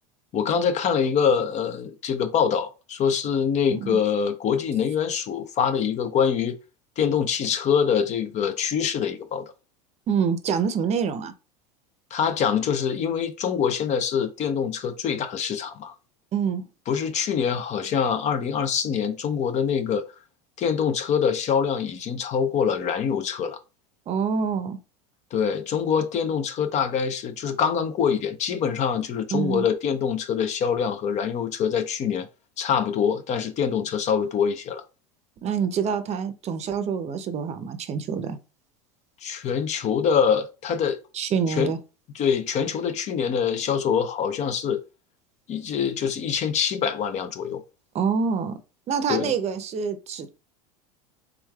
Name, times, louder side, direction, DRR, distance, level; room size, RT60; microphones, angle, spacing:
voice 1, 0.3-6.6 7.0-9.4 12.1-15.9 16.9-20.1 20.6-23.6 25.3-32.3 32.6-34.8 39.2-41.0 41.6-41.7 42.2-44.8 45.5-47.6 49.1-49.3, left 7 dB, 40° left, 0.5 m, -24 dB
voice 2, 10.1-11.3 16.3-16.6 24.1-24.8 29.3-29.7 35.4-38.4 41.1-41.8 47.9-48.6 48.9-50.3, right 6 dB, 35° right, 0.6 m, -26 dB
3.5 x 3.1 x 2.3 m
hypercardioid pair, 95°, 19 cm